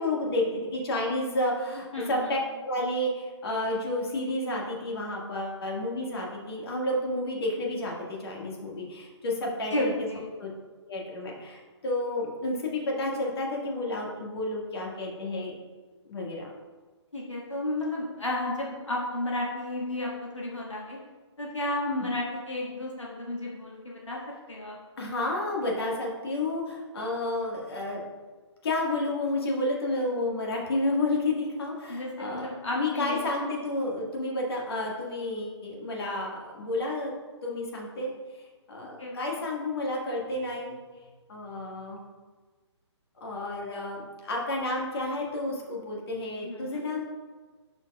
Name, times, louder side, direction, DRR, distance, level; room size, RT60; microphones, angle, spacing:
voice 1, 0.0-10.1 10.4-10.5 10.9-15.5 16.1-16.5 25.0-28.1 28.6-37.1 37.4-38.1 38.4-40.8 41.3-42.0 43.2-47.0, left 1 dB, 55° left, -2 dB, 1.8 m, -31 dB
voice 2, 1.9-2.3 9.7-10.3 17.1-21.0 21.4-24.2 24.5-24.8 31.9-33.2 39.0-39.1 46.4-46.8, left 1 dB, 85° left, -3 dB, 1.6 m, -32 dB
11.5 x 4.5 x 2.3 m, 1.4 s
figure-of-eight pair, 140°, 15 cm